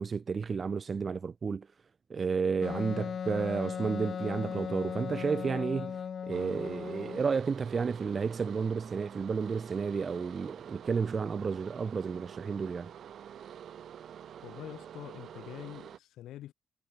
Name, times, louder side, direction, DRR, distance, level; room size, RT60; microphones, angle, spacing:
voice 1, 0.0-1.7 2.1-6.0 6.3-12.9, right 5 dB, 40° right, 0.6 m, -32 dB
Wind instrument woodwind instrument, 2.6-7.3, left 7 dB, 50° left, 2.0 m, -37 dB
sound 1, 6.3-16.0, right 9 dB, 65° right, 7.8 m, -47 dB
voice 2, 14.4-16.5, left 13 dB, 85° left, 3.0 m, -45 dB
cardioid pair, 100°, 0 cm